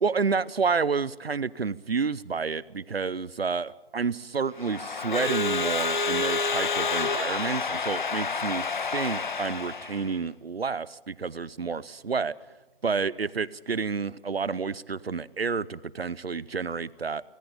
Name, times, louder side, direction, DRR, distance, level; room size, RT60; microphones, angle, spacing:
voice 1, 0.0-8.6 8.9-12.4 12.8-17.3, right 5 dB, 80° right, 21 dB, 0.8 m, -29 dB
Crowd / Alarm, 4.6-10.1, left 4 dB, 55° left, 1.2 m, -29 dB
18.0 x 18.0 x 8.6 m, 1.1 s
figure-of-eight pair, 145°, 30 cm